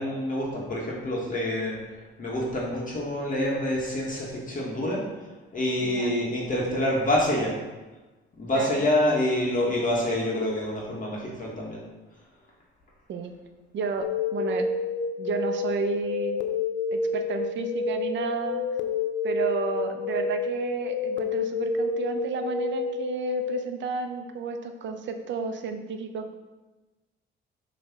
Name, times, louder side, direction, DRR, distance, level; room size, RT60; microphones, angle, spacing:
voice 1, 0.0-1.7 2.2-5.0 5.5-7.5 8.4-11.8, left 1 dB, 40° left, -4 dB, 1.7 m, -27 dB
voice 2, 5.8-6.1 8.5-8.8 13.1-13.3 13.7-14.6 15.2-16.4 16.9-18.6 19.2-26.3, right 5 dB, 70° right, 6 dB, 0.8 m, -32 dB
sound 1, 14.0-23.6, left 4 dB, 70° left, 0.7 m, -29 dB
6.4 x 3.3 x 6.0 m, 1.2 s
cardioid pair, 90°, 20 cm